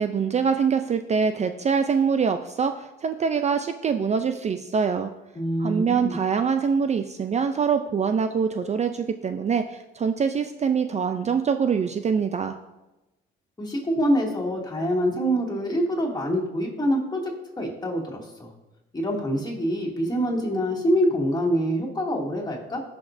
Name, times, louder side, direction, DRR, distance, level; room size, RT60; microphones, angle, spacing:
voice 1, 0.0-5.1 5.6-12.6, right 6 dB, 35° right, 8 dB, 0.4 m, -24 dB
voice 2, 5.3-6.1 13.6-17.2 17.6-18.5 18.9-22.8, equal, 20° left, -2 dB, 2.4 m, -25 dB
16.5 x 6.0 x 2.6 m, 1.0 s
cardioid pair, 90°, 20 cm